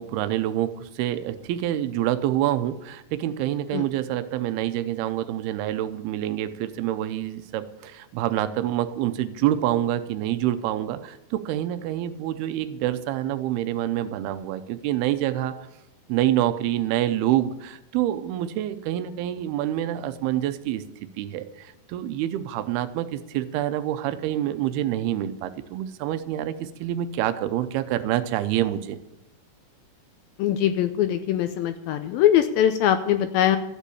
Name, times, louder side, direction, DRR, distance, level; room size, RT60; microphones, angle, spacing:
voice 1, 0.0-15.6 16.1-20.8 21.2-29.0, right 12 dB, 85° right, 10 dB, 2.6 m, -27 dB
voice 2, 30.4-33.6, left 10 dB, 80° left, 9 dB, 2.2 m, -22 dB
13.5 x 8.3 x 8.6 m, 0.90 s
omnidirectional pair, 4.7 m